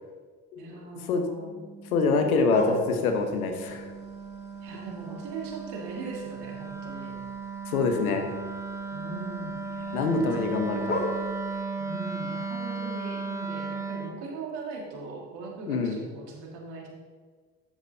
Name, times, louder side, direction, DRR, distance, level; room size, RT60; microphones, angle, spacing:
voice 1, 0.6-1.6 4.6-7.2 8.9-10.5 11.8-16.9, right 3 dB, 70° right, -1 dB, 2.1 m, -40 dB
Wind instrument woodwind instrument, 1.3-14.2, right 4 dB, 5° right, 0.8 m, -36 dB
voice 2, 1.9-3.9 7.7-8.3 9.9-11.0 15.7-16.0, left 4 dB, 90° left, 5 dB, 1.0 m, -25 dB
sound 1, 2.5-11.6, left 1 dB, 25° left, 1.6 m, -39 dB
11.0 x 7.0 x 2.7 m, 1.5 s
hypercardioid pair, 60°, 42 cm